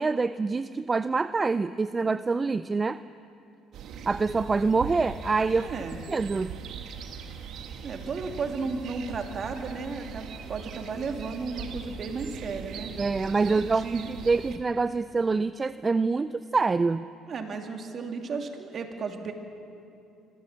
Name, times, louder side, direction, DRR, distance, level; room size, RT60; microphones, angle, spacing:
voice 1, 0.0-3.0 4.1-5.7 6.1-6.5 13.0-17.1, right 4 dB, 30° right, 14 dB, 0.5 m, -26 dB
sound 1, 3.7-14.6, right 7 dB, 65° right, 1.7 m, -40 dB
voice 2, 5.6-6.0 7.8-12.9 13.4-14.1 17.3-19.3, right 4 dB, 50° right, 4 dB, 2.7 m, -34 dB
25.5 x 15.5 x 7.4 m, 2.6 s
hypercardioid pair, 65°, 0 cm